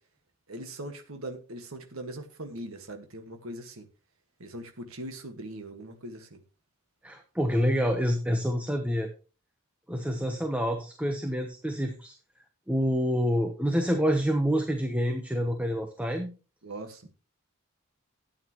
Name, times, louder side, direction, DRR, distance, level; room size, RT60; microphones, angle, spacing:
voice 1, 0.5-3.9 4.4-6.4 16.6-17.1, right 1 dB, 70° right, 1.7 m, -40 dB
voice 2, 7.0-9.1 9.9-12.1 12.7-16.3, equal, 5° right, 1.0 m, -27 dB
13.0 x 8.9 x 3.0 m
head